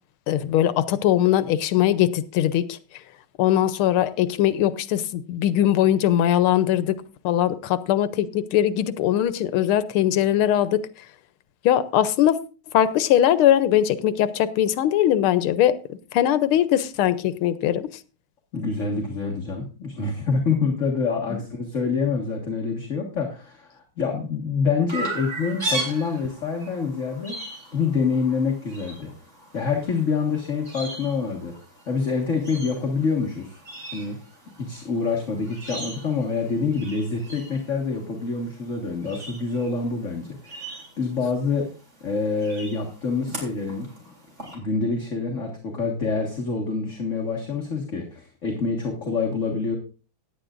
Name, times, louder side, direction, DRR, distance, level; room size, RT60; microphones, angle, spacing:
voice 1, 0.3-2.8 3.4-7.0 7.2-10.8 11.6-12.4 12.7-15.8 16.1-17.9 21.3-21.4, left 11 dB, 90° left, 1.6 m, -21 dB
voice 2, 18.5-27.4 27.7-29.1 29.5-31.6 31.9-33.6 33.9-34.2 34.6-41.7 42.0-43.9 44.5-49.8, left 4 dB, 40° left, 1.8 m, -26 dB
Chirp tweet, 24.9-44.5, right 2 dB, 30° right, 3.9 m, -38 dB
17.0 x 10.0 x 2.5 m
omnidirectional pair, 2.3 m